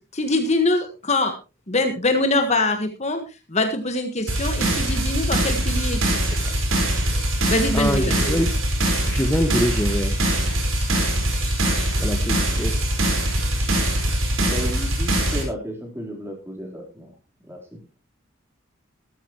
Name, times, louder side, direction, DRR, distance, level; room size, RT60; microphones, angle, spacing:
voice 1, 0.1-1.3 1.7-3.2 3.5-6.2 7.5-8.4, left 2 dB, 35° left, 6 dB, 1.5 m, -23 dB
sound 1, 4.3-15.4, right 1 dB, 80° right, 4.7 m, -22 dB
voice 2, 7.7-8.6 9.0-10.2 12.0-13.0, equal, 10° left, 4 dB, 1.4 m, -25 dB
voice 3, 14.5-17.1 17.4-17.8, equal, 10° right, 0 dB, 3.9 m, -33 dB
15.0 x 13.5 x 3.1 m, 0.29 s
head